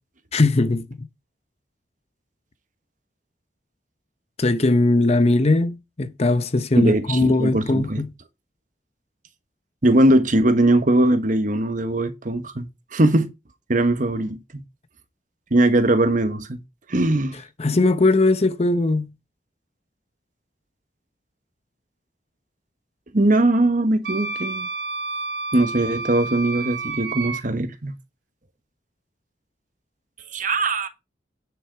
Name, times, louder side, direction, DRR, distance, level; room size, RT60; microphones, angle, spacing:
voice 1, 0.3-1.1 4.4-8.1 17.6-19.1, left 2 dB, 35° left, 0.7 m, -20 dB
voice 2, 6.8-8.0 9.8-13.3 13.7-14.6 15.5-16.6 16.9-17.4 23.1-24.7 25.5-27.9 30.3-30.9, right 1 dB, 50° right, 1.3 m, -20 dB
Wind instrument woodwind instrument, 24.0-27.4, right 3 dB, 70° right, 1.4 m, -30 dB
9.6 x 6.3 x 4.6 m
head